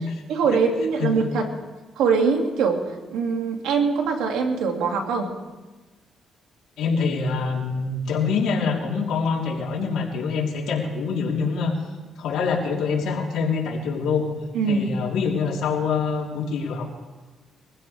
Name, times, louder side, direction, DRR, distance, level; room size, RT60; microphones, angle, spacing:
voice 1, 0.3-1.5 2.0-5.3 14.5-14.8, right 5 dB, 90° right, 3 dB, 2.4 m, -23 dB
voice 2, 6.8-11.8 12.2-14.3 14.7-16.8, left 5 dB, 80° left, -2 dB, 3.6 m, -25 dB
23.5 x 15.5 x 3.5 m, 1.2 s
cardioid pair, 90°, 0 cm